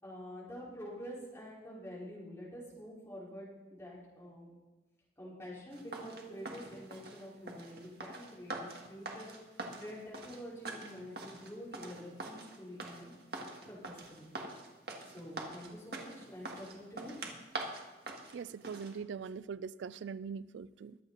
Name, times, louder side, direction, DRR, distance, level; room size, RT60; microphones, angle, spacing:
voice 1, 0.0-4.5 5.2-9.3 9.7-13.1 13.7-14.3 15.0-17.1, equal, 15° left, -7 dB, 4.3 m, -47 dB
sound 1, 5.7-18.9, right 2 dB, 55° right, 1.9 m, -44 dB
voice 2, 18.3-21.0, right 6 dB, 80° right, 17 dB, 0.3 m, -42 dB
22.0 x 8.3 x 4.0 m, 1.1 s
head